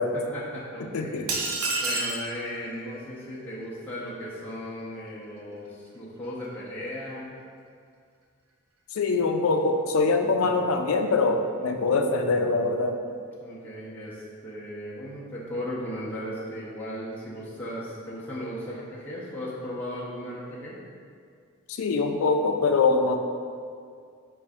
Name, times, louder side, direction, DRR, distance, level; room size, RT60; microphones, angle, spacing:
voice 1, 0.1-1.2 1.8-7.4 10.2-10.4 11.6-11.8 13.4-20.8, equal, 10° left, -9 dB, 0.6 m, -36 dB
voice 2, 0.9-1.4 8.9-13.0 21.7-23.2, left 3 dB, 75° left, 5 dB, 0.4 m, -23 dB
sound 1, 1.3-2.3, right 2 dB, 85° right, 0.6 m, -27 dB
5.1 x 2.5 x 3.4 m, 2.2 s
head